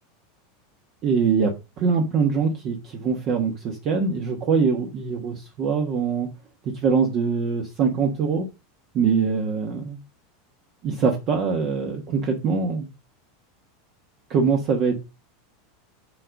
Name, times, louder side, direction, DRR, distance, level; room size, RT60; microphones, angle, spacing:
voice 1, 1.0-6.3 6.8-8.5 8.9-10.0 10.8-12.9 14.3-15.0, right 5 dB, 35° right, 2 dB, 1.3 m, -23 dB
7.5 x 3.9 x 5.2 m, 0.26 s
supercardioid pair, 160°, 0 cm